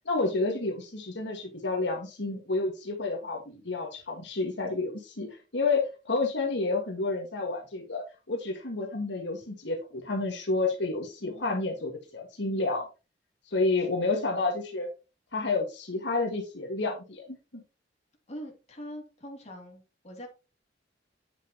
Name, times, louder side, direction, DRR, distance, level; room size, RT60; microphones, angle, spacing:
voice 1, 0.1-12.9 13.5-14.9 15.3-17.6, left 3 dB, 75° left, 1 dB, 1.9 m, -30 dB
voice 2, 11.2-11.5 13.8-13.9 18.3-20.3, equal, 35° left, 0 dB, 2.8 m, -43 dB
8.7 x 7.1 x 3.0 m, 0.30 s
head